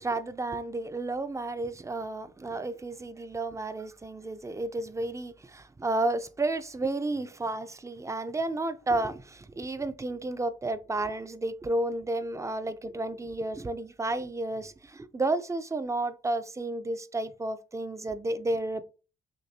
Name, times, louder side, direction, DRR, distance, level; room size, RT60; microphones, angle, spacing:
voice 1, 0.0-18.8, right 2 dB, 15° right, 0.5 m, -32 dB
6.5 x 2.6 x 2.8 m
cardioid pair, 90°, 20 cm